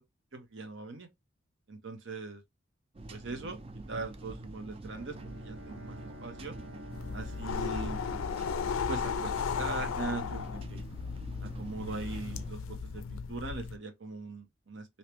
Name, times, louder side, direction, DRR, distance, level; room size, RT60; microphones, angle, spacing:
voice 1, 0.3-1.1 1.7-2.4 3.1-3.6 3.9-6.6 7.1-8.0 8.9-10.8 11.4-14.9, right 3 dB, 60° right, 0.9 m, -40 dB
sound 1, 2.9-12.5, right 2 dB, 30° right, 0.4 m, -46 dB
Bowed string instrument, 4.9-9.9, equal, 85° right, 1.3 m, -50 dB
sound 2, 6.9-13.8, left 6 dB, 80° left, 0.4 m, -35 dB
3.3 x 2.8 x 2.9 m
head